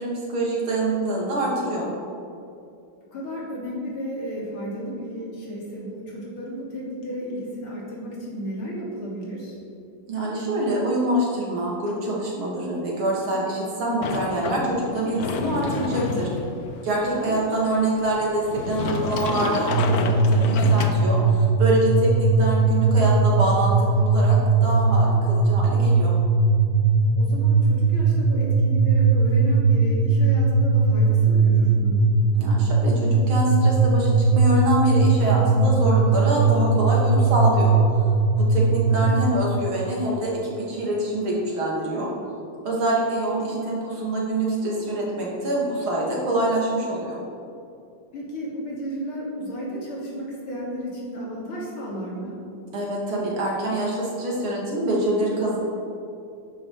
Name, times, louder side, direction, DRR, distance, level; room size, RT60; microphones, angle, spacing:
voice 1, 0.0-1.9 10.1-16.3 16.8-24.4 24.6-26.2 32.3-37.7 38.4-42.1 42.6-47.2 52.7-55.6, right 1 dB, 75° right, -4 dB, 3.4 m, -25 dB
voice 2, 3.1-9.6 17.0-17.5 27.2-32.0 38.6-39.1 48.1-52.4, equal, 85° left, -4 dB, 3.7 m, -33 dB
Sliding door, 14.0-21.5, left 5 dB, 65° left, 1.0 m, -30 dB
sound 1, 19.7-39.3, right 3 dB, 50° right, 1.2 m, -19 dB
11.5 x 10.0 x 5.0 m, 2.6 s
omnidirectional pair, 2.3 m